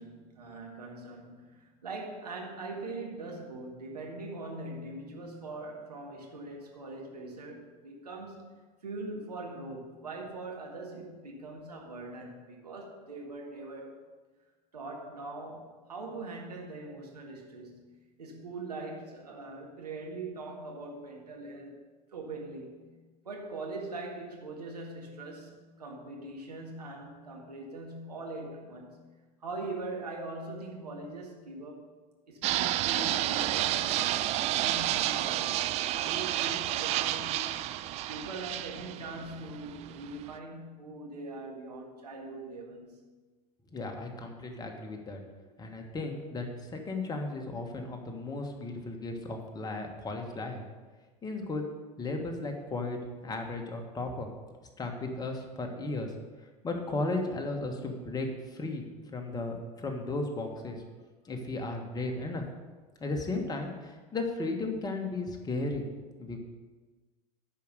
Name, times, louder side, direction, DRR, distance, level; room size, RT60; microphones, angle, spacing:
voice 1, 0.0-8.5 8.8-14.0 14.7-21.7 22.1-22.8 23.2-29.0 29.4-31.8 32.3-37.5 38.1-43.0, right 2 dB, 80° right, 0 dB, 1.8 m, -42 dB
Fixed-wing aircraft airplane, 32.4-40.4, right 14 dB, 35° right, 0.3 m, -30 dB
voice 2, 43.7-45.2 45.6-50.6 51.2-51.7 52.0-54.3 54.8-56.1 56.6-58.8 59.1-60.8 61.3-62.4 63.0-65.8 66.2-66.4, left 2 dB, 20° left, 3 dB, 1.5 m, -35 dB
10.0 x 5.1 x 6.8 m, 1.3 s
figure-of-eight pair, 75°, 20 cm